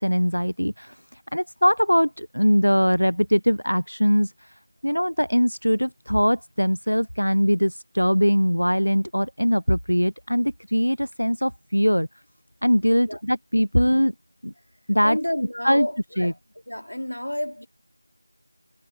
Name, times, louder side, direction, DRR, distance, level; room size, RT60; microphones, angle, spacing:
voice 1, 0.0-4.5 4.8-12.1 12.6-14.1 14.4-14.5 14.9-15.2 15.6-15.9 16.2-16.3, equal, 90° left, 0.5 m, -21 dB
voice 2, 15.0-16.4 16.7-17.7, left 1 dB, 70° left, 3.3 m, -30 dB
figure-of-eight pair, 175°, 0 cm